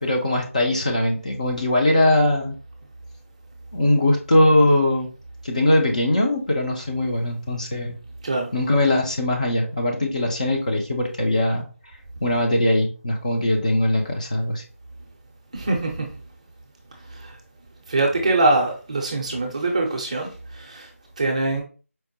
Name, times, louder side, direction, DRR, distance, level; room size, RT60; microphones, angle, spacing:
voice 1, 0.0-2.5 3.7-5.1 5.4-8.0 8.5-11.7 12.2-14.6, left 1 dB, 30° left, 0.5 m, -21 dB
voice 2, 15.5-16.1 17.1-17.4 17.9-20.9 21.2-21.6, right 2 dB, 25° right, 0.5 m, -23 dB
4.4 x 2.1 x 2.8 m
figure-of-eight pair, 165°, 8 cm